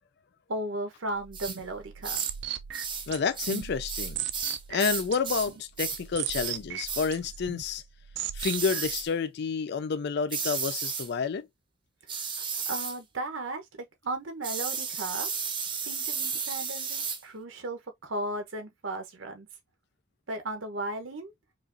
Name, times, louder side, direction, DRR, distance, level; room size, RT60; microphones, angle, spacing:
voice 1, 0.5-2.2 12.7-15.3 15.8-19.5 20.3-21.3, right 2 dB, 90° right, 1.0 m, -35 dB
sound 1, 1.1-9.1, right 10 dB, 65° right, 0.4 m, -38 dB
sound 2, 1.3-1.6 2.0-2.4 2.7-3.1 3.4-5.5 5.8-6.0 6.3-6.6 6.9-7.1 8.4-9.1 10.3-11.1 12.1-13.0 14.4-17.2, right 6 dB, 25° right, 0.7 m, -33 dB
voice 2, 3.1-7.8 8.3-11.5, left 5 dB, 55° left, 0.4 m, -30 dB
4.9 x 2.5 x 2.5 m
head